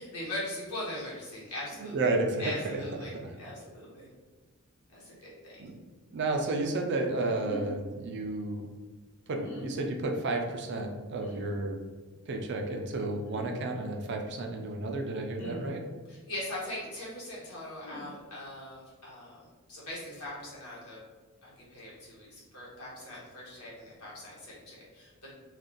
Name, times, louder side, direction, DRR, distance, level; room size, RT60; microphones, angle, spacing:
voice 1, 0.0-2.1 2.4-4.1 4.9-5.7 16.1-21.0 21.4-25.3, left 1 dB, 85° left, -6 dB, 1.3 m, -41 dB
voice 2, 1.8-2.8 3.1-3.3 5.6-5.7 6.1-8.7 9.3-11.8 12.3-15.8, right 2 dB, 50° right, 3 dB, 0.4 m, -32 dB
sound 1, 7.4-7.7 9.4-9.7 11.2-11.5 13.2-13.5 15.4-15.7 17.8-18.0, left 1 dB, 65° left, 1.1 m, -42 dB
2.6 x 2.3 x 3.7 m, 1.4 s
head